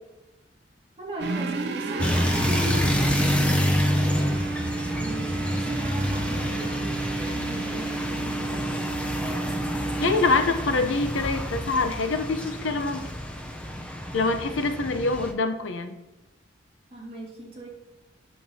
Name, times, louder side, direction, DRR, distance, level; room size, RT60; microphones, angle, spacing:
voice 1, 1.0-4.2 4.9-8.8 14.5-14.6 16.9-17.7, right 1 dB, 30° right, -4 dB, 2.0 m, -38 dB
sound 1, 1.2-10.6, right 3 dB, 60° right, 0.6 m, -32 dB
sound 2, 2.0-15.3, equal, 5° left, 0.5 m, -28 dB
voice 2, 10.0-13.1 14.1-16.0, left 3 dB, 85° left, 8 dB, 0.7 m, -25 dB
8.4 x 6.7 x 2.7 m, 1.0 s
head